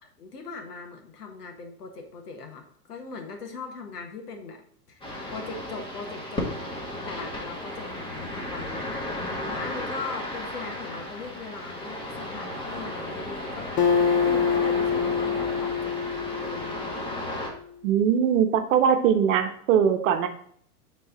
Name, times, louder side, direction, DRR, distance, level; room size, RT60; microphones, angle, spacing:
voice 1, 0.0-4.6 4.9-6.5 7.0-8.9 9.4-13.8 14.2-16.9, left 4 dB, 80° left, 3 dB, 1.7 m, -40 dB
sound 1, 5.0-17.5, left 1 dB, 10° left, 1.7 m, -34 dB
Acoustic guitar, 13.8-17.4, left 6 dB, 25° left, 0.6 m, -25 dB
voice 2, 17.8-20.3, right 8 dB, 55° right, 7 dB, 1.1 m, -21 dB
9.3 x 4.0 x 3.9 m, 0.62 s
hypercardioid pair, 115°, 46 cm